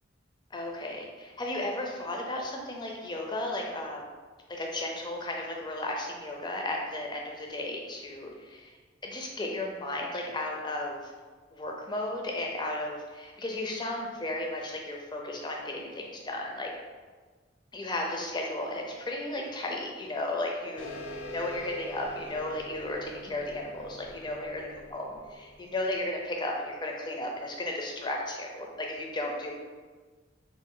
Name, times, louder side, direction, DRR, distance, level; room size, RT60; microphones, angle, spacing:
voice 1, 0.5-4.1 4.5-8.7 9.0-11.1 11.5-16.7 17.7-21.0 21.3-29.5, left 1 dB, 25° left, 0 dB, 0.4 m, -34 dB
sound 1, 20.8-25.9, left 1 dB, 80° left, 0.4 m, -44 dB
3.1 x 2.2 x 3.7 m, 1.4 s
head